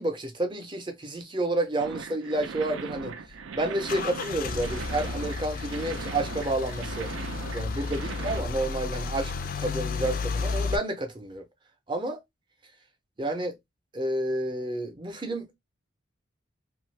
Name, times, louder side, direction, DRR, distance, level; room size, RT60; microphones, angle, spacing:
voice 1, 0.0-3.2 3.5-7.1 7.5-11.4 11.9-12.2 13.2-13.6 13.9-15.6, right 1 dB, 25° right, 0.5 m, -30 dB
sound 1, 1.8-8.4, right 5 dB, 75° right, 0.4 m, -39 dB
Car / Engine starting / Idling, 2.9-10.8, left 4 dB, 45° left, 0.3 m, -33 dB
2.7 x 2.4 x 3.1 m
head